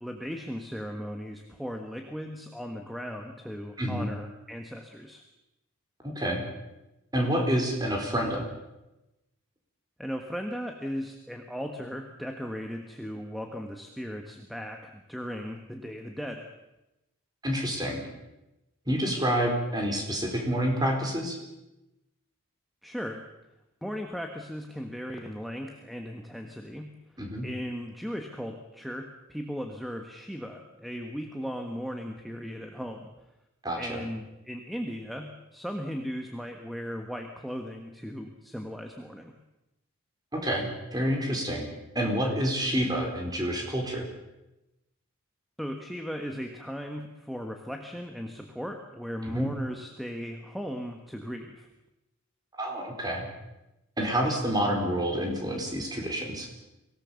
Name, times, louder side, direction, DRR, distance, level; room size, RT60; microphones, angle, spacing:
voice 1, 0.0-5.2 10.0-16.5 22.8-23.2 23.8-27.0 27.4-33.1 33.8-39.4 45.6-51.7, equal, ahead, 4 dB, 1.3 m, -37 dB
voice 2, 3.8-4.1 6.0-6.4 7.1-8.4 17.4-18.0 18.9-21.4 27.2-27.5 33.6-34.0 40.3-41.7 41.9-44.1 49.2-49.5 52.6-53.3 54.0-56.5, equal, 20° right, 1 dB, 4.2 m, -28 dB
24.0 x 18.0 x 7.0 m, 0.96 s
head